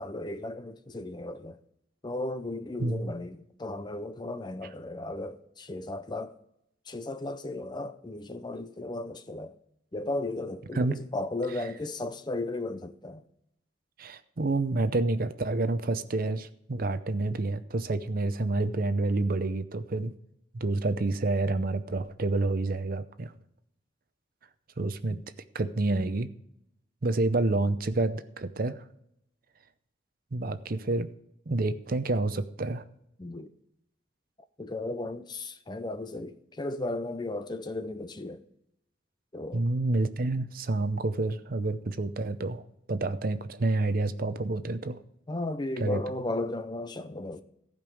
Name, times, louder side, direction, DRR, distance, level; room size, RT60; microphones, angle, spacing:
voice 1, 0.0-1.6 2.0-6.4 6.9-9.5 9.9-13.2 25.1-25.2 33.2-33.5 34.6-38.4 39.3-39.7 45.3-47.4, left 2 dB, 25° left, 0.5 m, -35 dB
voice 2, 2.8-3.1 10.7-11.0 14.0-20.1 20.5-23.3 24.8-25.2 25.5-26.3 27.0-28.8 30.3-31.1 31.5-32.8 39.5-42.6 42.9-45.0 45.8-46.0, right 2 dB, 50° right, 0.6 m, -28 dB
15.0 x 5.3 x 6.3 m
head